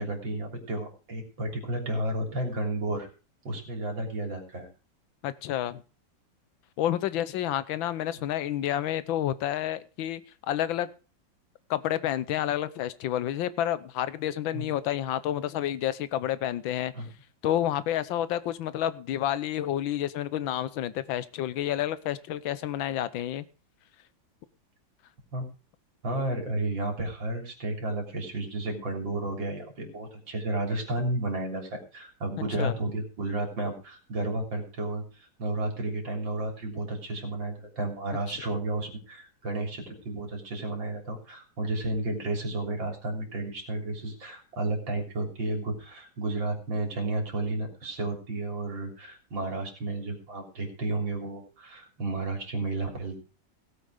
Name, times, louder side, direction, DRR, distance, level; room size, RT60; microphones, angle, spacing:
voice 1, 0.0-3.1 3.4-4.7 8.2-8.3 14.5-14.7 16.9-17.1 25.3-25.5 26.0-53.2, right 2 dB, 75° right, 4.2 m, -32 dB
voice 2, 5.2-5.8 6.8-10.2 10.5-10.9 11.7-16.9 17.4-23.4 32.5-32.7, left 11 dB, 90° left, 1.6 m, -29 dB
17.5 x 8.1 x 5.0 m
omnidirectional pair, 2.1 m